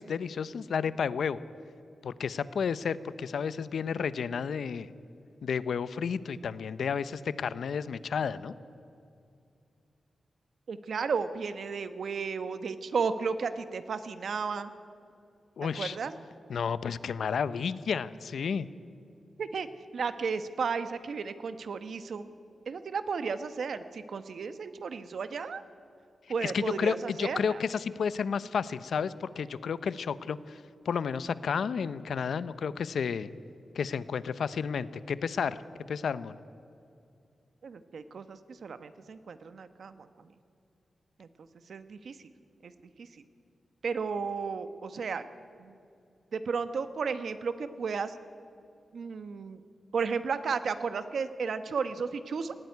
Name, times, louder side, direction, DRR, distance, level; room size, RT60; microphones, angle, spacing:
voice 1, 0.0-1.4 2.0-4.9 5.4-8.5 15.6-16.0 16.5-18.7 26.4-33.3 33.7-35.6 35.9-36.4, left 6 dB, 80° left, 16 dB, 0.7 m, -31 dB
voice 2, 10.7-14.7 15.7-16.1 19.4-19.7 19.9-22.3 22.7-25.6 26.3-27.6 37.6-40.3 41.2-42.2 42.6-42.7 43.0-43.2 43.8-45.2 45.6-45.7 46.3-48.2 48.9-49.6 49.9-52.5, right 5 dB, 70° right, 11 dB, 1.1 m, -34 dB
19.0 x 16.5 x 9.5 m, 2.5 s
wide cardioid pair, 125°, 0 cm